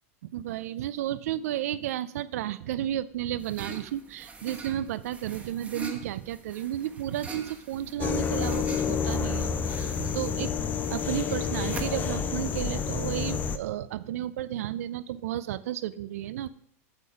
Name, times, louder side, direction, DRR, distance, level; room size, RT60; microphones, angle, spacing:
voice 1, 0.3-10.5 10.9-16.5, right 12 dB, 75° right, 15 dB, 0.4 m, -33 dB
sound 1, 3.1-13.3, right 4 dB, 15° right, 1.1 m, -44 dB
sound 2, 8.0-13.6, left 6 dB, 20° left, 0.5 m, -29 dB
8.1 x 6.7 x 5.0 m, 0.68 s
supercardioid pair, 145°, 8 cm